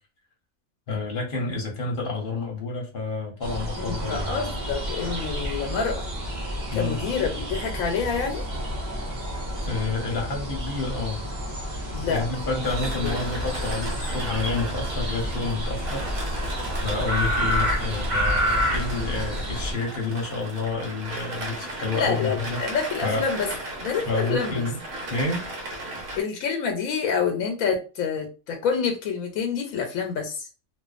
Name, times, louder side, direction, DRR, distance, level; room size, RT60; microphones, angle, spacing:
voice 1, 0.9-4.5 6.7-7.0 9.6-11.2 12.1-16.0 16.8-22.6 23.0-23.2 24.0-24.8 25.1-25.4, left 3 dB, 45° left, 0 dB, 0.8 m, -29 dB
sound 1, 3.4-19.7, equal, 40° right, 0.7 m, -29 dB
voice 2, 3.8-6.1 6.7-8.4 11.9-12.3 13.0-13.2 21.9-23.5 23.8-24.7 26.2-30.5, left 6 dB, 80° left, 4 dB, 1.0 m, -27 dB
sound 2, 12.6-26.2, right 1 dB, 70° right, 1.1 m, -36 dB
2.5 x 2.3 x 2.4 m, 0.32 s
omnidirectional pair, 1.4 m